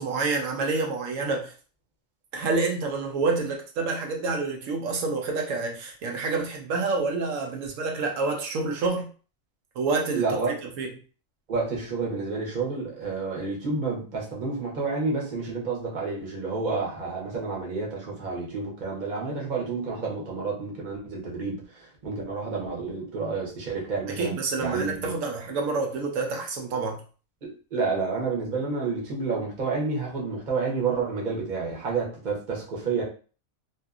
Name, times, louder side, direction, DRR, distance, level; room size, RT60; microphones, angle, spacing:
voice 1, 0.0-1.5 2.3-9.1 9.8-10.4 10.8-10.9 24.1-27.0, right 3 dB, 80° right, 2 dB, 1.0 m, -28 dB
voice 2, 10.1-10.5 11.5-21.6 22.0-25.1 27.4-33.0, right 4 dB, 40° right, -3 dB, 0.9 m, -29 dB
2.6 x 2.3 x 2.3 m, 0.38 s
omnidirectional pair, 1.3 m